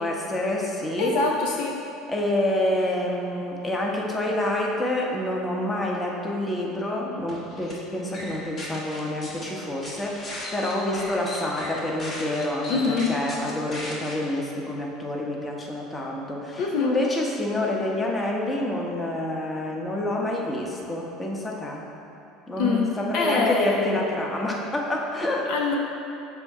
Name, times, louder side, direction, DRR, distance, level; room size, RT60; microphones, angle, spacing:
voice 1, 0.0-1.2 2.1-21.8 22.5-25.5, left 1 dB, 20° left, -1 dB, 1.0 m, -28 dB
voice 2, 1.0-1.8 12.7-13.2 16.6-17.0 22.6-24.0 25.5-25.8, left 4 dB, 70° left, 0 dB, 0.6 m, -24 dB
sound 1, 7.3-7.7 8.1-9.4 9.8-14.1, left 1 dB, 40° left, 1.5 m, -37 dB
6.9 x 2.7 x 5.5 m, 2.7 s
hypercardioid pair, 85°, 0 cm